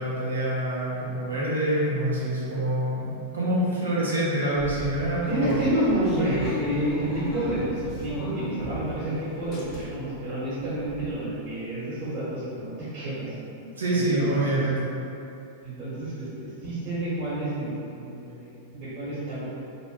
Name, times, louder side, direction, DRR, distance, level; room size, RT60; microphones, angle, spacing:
voice 1, 0.0-3.1 3.3-5.6 13.8-14.9, right 1 dB, 90° right, -7 dB, 0.8 m, -26 dB
sound 1, 4.6-9.0 9.3-10.2 10.6-10.7 10.8-11.1, left 1 dB, 40° left, 0.7 m, -35 dB
voice 2, 5.3-13.3 13.9-14.6 15.6-19.5, right 1 dB, 45° right, -12 dB, 1.3 m, -29 dB
2.9 x 2.1 x 2.8 m, 2.6 s
hypercardioid pair, 105°, 0 cm